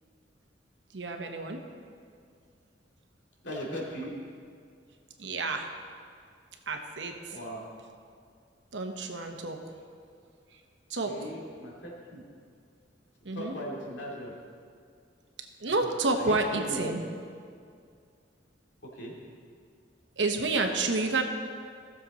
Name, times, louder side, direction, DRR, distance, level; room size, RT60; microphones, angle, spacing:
voice 1, 0.9-1.6 5.2-5.7 6.7-7.4 8.7-9.6 10.9-11.1 13.2-13.6 15.6-17.0 20.2-21.2, right 3 dB, 90° right, 4 dB, 1.0 m, -29 dB
voice 2, 3.4-4.1 7.3-7.6 11.0-12.2 13.3-14.4 16.2-17.0 18.9-19.1, equal, 85° left, -3 dB, 2.4 m, -38 dB
15.5 x 7.0 x 4.1 m, 2.3 s
head